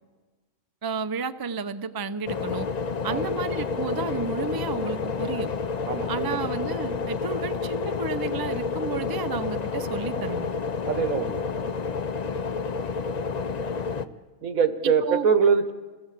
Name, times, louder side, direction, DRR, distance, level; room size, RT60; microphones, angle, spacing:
voice 1, 0.8-2.7 3.0-5.5 6.1-10.5 14.8-15.3, right 4 dB, 25° right, 10 dB, 0.5 m, -32 dB
sound 1, 2.3-14.1, left 5 dB, 40° left, 0.6 m, -29 dB
voice 2, 5.8-6.4 10.9-11.7 14.4-15.7, right 6 dB, 70° right, 9 dB, 1.7 m, -24 dB
27.0 x 17.5 x 7.6 m, 1.3 s
omnidirectional pair, 1.5 m